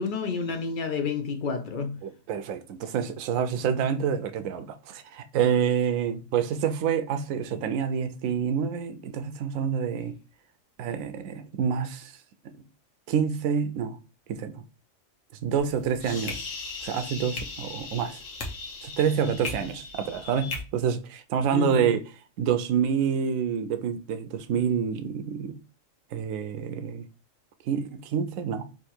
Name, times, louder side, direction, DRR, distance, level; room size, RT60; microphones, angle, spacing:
voice 1, 0.0-2.0 21.5-21.9, left 5 dB, 55° left, 0.6 m, -30 dB
voice 2, 2.0-10.2 10.8-12.1 12.4-12.5 13.1-14.0 14.3-14.6 15.4-16.4 16.8-18.2 18.8-22.0 22.4-25.6 26.1-27.1 27.7-28.7, right 7 dB, 80° right, 1.0 m, -27 dB
sound 1, 15.6-20.6, left 3 dB, 70° left, 1.3 m, -37 dB
3.6 x 2.8 x 4.3 m
omnidirectional pair, 1.4 m